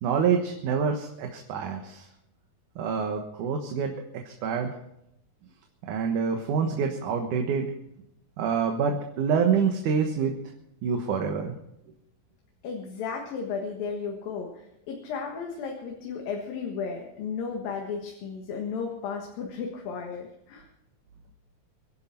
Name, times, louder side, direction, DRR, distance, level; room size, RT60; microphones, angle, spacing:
voice 1, 0.0-2.1 2.8-3.9 4.3-4.7 5.9-7.7 8.4-10.3 10.8-11.5, right 6 dB, 65° right, 3 dB, 2.7 m, -26 dB
voice 2, 12.6-20.7, left 5 dB, 80° left, 1 dB, 3.4 m, -34 dB
24.5 x 11.0 x 4.4 m, 0.80 s
omnidirectional pair, 4.0 m